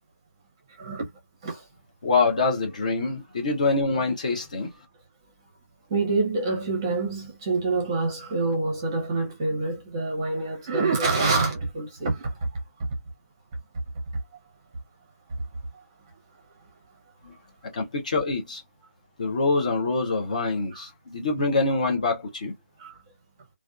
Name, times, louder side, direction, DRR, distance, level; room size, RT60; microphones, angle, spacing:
voice 1, 0.8-1.1 1.4-1.6 5.9-12.3 20.7-20.8 22.8-23.0, right 3 dB, 15° right, 0.6 m, -26 dB
voice 2, 2.0-4.7 17.2-17.3 17.7-18.6 19.2-22.5, left 3 dB, 30° left, 0.5 m, -25 dB
2.4 x 2.2 x 2.3 m
figure-of-eight pair, 165°, 8 cm